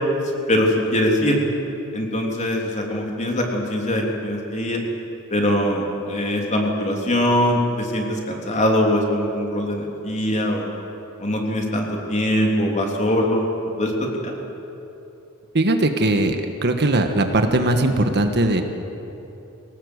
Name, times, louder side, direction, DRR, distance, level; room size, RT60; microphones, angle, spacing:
voice 1, 0.5-1.4 1.9-4.8 5.3-10.7 11.2-13.5 13.8-14.3, left 1 dB, 35° left, 0 dB, 3.4 m, -22 dB
voice 2, 15.5-16.4 16.6-18.6, right 1 dB, 50° right, 6 dB, 1.5 m, -19 dB
23.5 x 18.5 x 8.1 m, 3.0 s
head